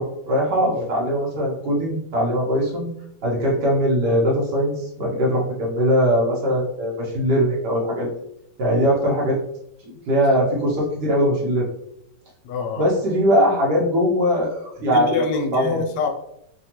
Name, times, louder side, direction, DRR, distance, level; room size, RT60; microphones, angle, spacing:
voice 1, 0.0-2.9 3.2-8.1 8.6-9.4 9.8-11.7 12.8-15.2 15.5-15.8, equal, 80° right, -4 dB, 1.3 m, -21 dB
voice 2, 12.4-12.9 14.9-16.1, left 5 dB, 80° left, 3 dB, 1.2 m, -25 dB
3.4 x 2.2 x 2.8 m, 0.77 s
omnidirectional pair, 1.8 m